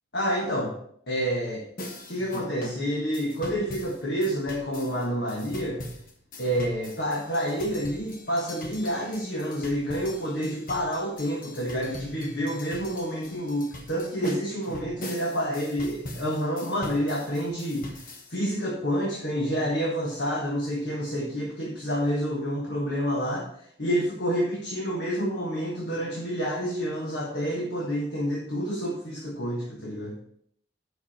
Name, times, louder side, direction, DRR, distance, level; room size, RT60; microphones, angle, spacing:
voice 1, 0.1-0.7 1.1-1.6 2.1-5.8 6.4-18.0 18.3-23.4 23.8-30.2, equal, 65° left, -3 dB, 1.6 m, -28 dB
sound 1, 1.8-18.3, left 1 dB, 50° left, 1.2 m, -41 dB
7.7 x 6.0 x 4.4 m, 0.67 s
head